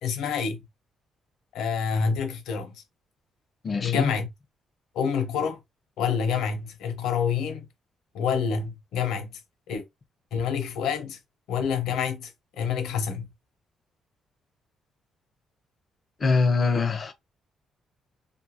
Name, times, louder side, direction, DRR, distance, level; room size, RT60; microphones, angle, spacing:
voice 1, 0.0-0.6 1.5-2.8 3.8-4.3 4.9-5.6 6.0-7.7 8.1-9.4 9.7-9.8 10.3-11.2 11.5-13.3, left 6 dB, 85° left, 0.8 m, -27 dB
voice 2, 3.6-4.1 16.2-17.1, left 4 dB, 40° left, 0.6 m, -23 dB
2.6 x 2.5 x 2.8 m
cardioid pair, 90°, 0 cm